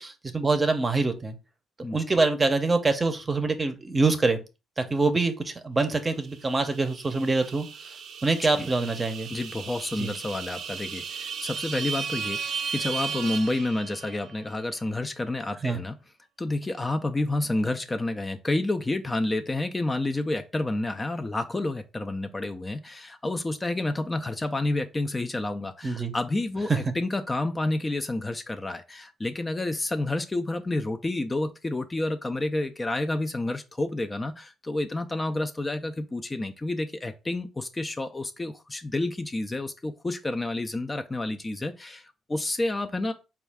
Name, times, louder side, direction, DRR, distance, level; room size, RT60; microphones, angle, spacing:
voice 1, 0.0-1.4 1.9-4.4 4.8-7.7 8.2-9.3 10.0-10.1 15.6-15.8 25.8-26.1, right 3 dB, 25° right, 0.7 m, -25 dB
sound 1, 6.3-14.3, right 6 dB, 65° right, 0.4 m, -35 dB
voice 2, 9.3-15.9 16.4-43.1, left 2 dB, 20° left, 0.4 m, -29 dB
4.2 x 2.3 x 3.4 m
cardioid pair, 90°, 0 cm